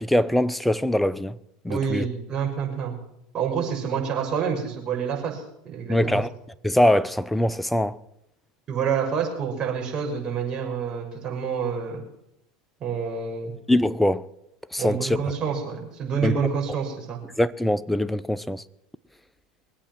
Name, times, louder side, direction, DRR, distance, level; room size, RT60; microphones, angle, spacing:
voice 1, 0.0-1.4 1.6-2.0 5.9-6.3 6.6-8.0 13.7-14.3 14.7-15.2 16.2-16.4 17.4-18.6, left 1 dB, 5° left, 0.7 m, -22 dB
voice 2, 1.7-2.9 3.3-6.2 8.7-12.0 12.8-13.5 14.8-17.2, right 6 dB, 35° right, 6.2 m, -28 dB
23.0 x 8.5 x 6.0 m
hypercardioid pair, 90°, 2 cm